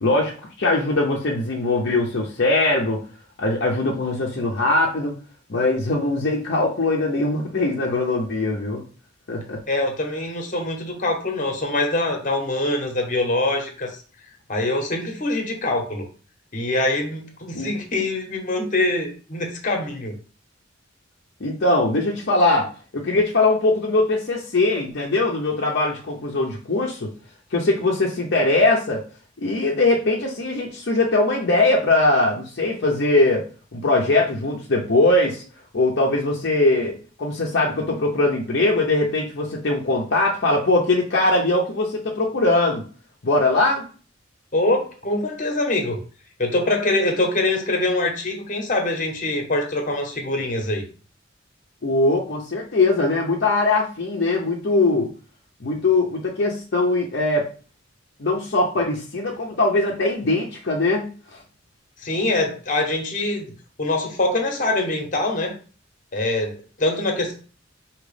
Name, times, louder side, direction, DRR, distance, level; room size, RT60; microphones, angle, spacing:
voice 1, 0.0-3.0 3.4-5.1 5.5-8.8 9.3-9.6 17.5-17.7 21.4-27.1 27.5-29.0 29.4-33.5 33.7-35.4 35.7-42.8 43.2-43.8 51.8-55.1 55.6-57.5 58.2-61.1, left 2 dB, 60° left, -2 dB, 0.7 m, -21 dB
voice 2, 9.7-13.9 14.5-16.0 16.5-20.2 44.5-46.0 46.4-50.8 62.0-63.5 63.8-65.5 66.1-67.3, left 2 dB, 40° left, 4 dB, 1.1 m, -24 dB
5.1 x 2.9 x 3.3 m, 0.37 s
head